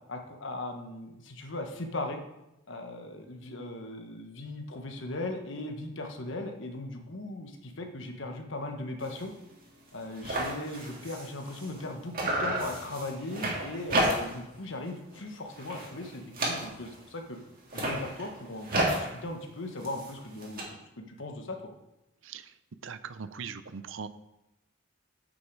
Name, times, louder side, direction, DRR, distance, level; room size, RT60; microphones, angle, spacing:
voice 1, 0.1-2.2 2.7-9.3 9.9-17.4 17.7-21.7, left 2 dB, 60° left, 4 dB, 1.2 m, -38 dB
sound 1, 9.0-9.2 9.6-9.7 9.9-11.9 12.1-14.5 14.8-15.2 15.5-17.0 17.6-20.6, right 1 dB, 40° right, 2.2 m, -32 dB
voice 2, 22.2-22.5 22.8-24.1, right 6 dB, 65° right, 13 dB, 0.5 m, -40 dB
9.4 x 6.5 x 4.7 m, 0.93 s
head